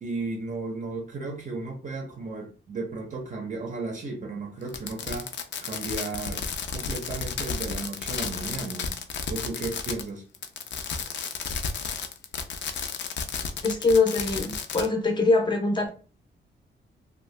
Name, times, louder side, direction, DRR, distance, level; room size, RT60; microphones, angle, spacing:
voice 1, 0.0-9.0 9.3-10.2, right 3 dB, 40° right, 0.5 m, -34 dB
Fireworks, 4.7-10.1 10.3-14.9, left 6 dB, 70° left, 0.4 m, -32 dB
voice 2, 13.6-15.9, left 3 dB, 25° left, 0.6 m, -23 dB
2.7 x 2.2 x 3.1 m
wide cardioid pair, 145°, 20 cm